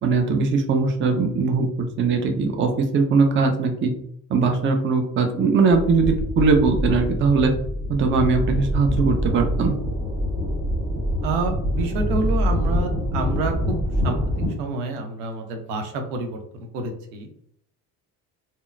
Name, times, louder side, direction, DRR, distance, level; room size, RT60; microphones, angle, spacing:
voice 1, 0.0-1.7 2.0-3.9 4.3-7.5 7.9-9.8, right 4 dB, 25° right, 4 dB, 0.5 m, -20 dB
sound 1, 5.7-14.5, equal, 40° right, 1.5 m, -25 dB
voice 2, 11.2-13.8 14.0-14.2 14.6-16.4 16.7-17.3, right 3 dB, 70° right, 5 dB, 0.7 m, -28 dB
3.6 x 2.0 x 2.4 m, 0.70 s
figure-of-eight pair, 50°, 50 cm